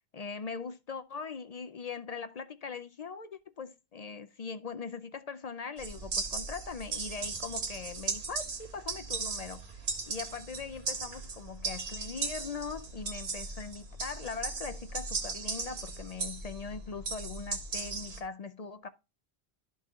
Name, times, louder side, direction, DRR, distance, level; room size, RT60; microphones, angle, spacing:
voice 1, 0.1-18.9, left 5 dB, 50° left, 0.5 m, -41 dB
sound 1, 5.8-18.2, right 4 dB, 70° right, 1.4 m, -37 dB
12.0 x 4.1 x 3.6 m
omnidirectional pair, 1.1 m